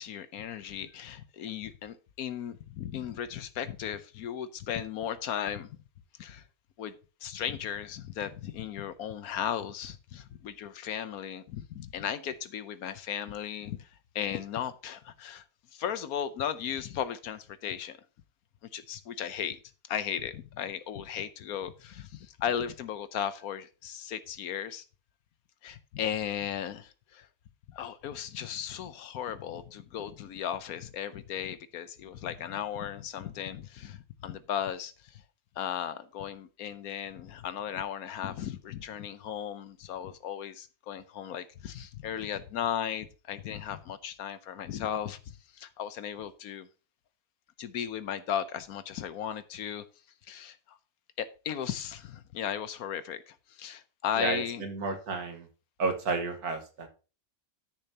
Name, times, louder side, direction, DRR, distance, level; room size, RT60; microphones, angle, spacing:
voice 1, 0.0-5.7 6.2-6.4 6.8-6.9 7.2-13.9 14.1-15.4 15.7-18.0 18.7-19.6 19.9-24.8 25.6-27.3 27.7-35.2 35.6-46.7 47.6-49.8 50.3-50.8 51.2-54.6, left 9 dB, 80° left, 13 dB, 1.2 m, -36 dB
voice 2, 54.2-55.5 55.8-56.9, right 4 dB, 85° right, 6 dB, 2.0 m, -32 dB
13.0 x 6.8 x 2.9 m, 0.34 s
omnidirectional pair, 1.6 m